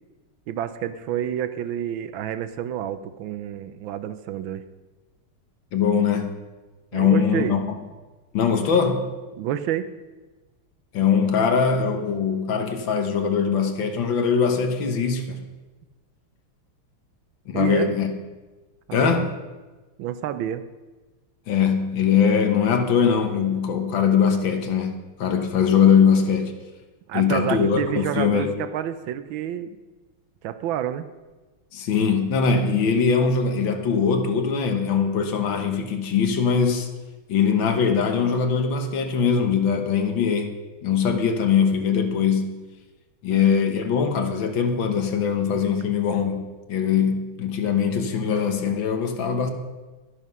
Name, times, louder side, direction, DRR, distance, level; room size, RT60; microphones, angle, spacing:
voice 1, 0.5-4.6 6.9-7.7 9.4-9.9 17.5-18.0 18.9-19.2 20.0-20.6 27.1-29.8 30.4-31.1 43.3-43.4, right 10 dB, 75° right, 12 dB, 1.3 m, -29 dB
voice 2, 5.7-6.3 6.9-7.7 8.3-9.1 10.9-15.4 17.5-18.1 18.9-19.3 21.5-26.5 27.1-28.5 31.7-36.9 37.3-40.5 40.8-42.5 43.2-49.5, left 6 dB, 65° left, 5 dB, 1.8 m, -21 dB
11.5 x 11.0 x 5.5 m, 1.2 s
omnidirectional pair, 2.3 m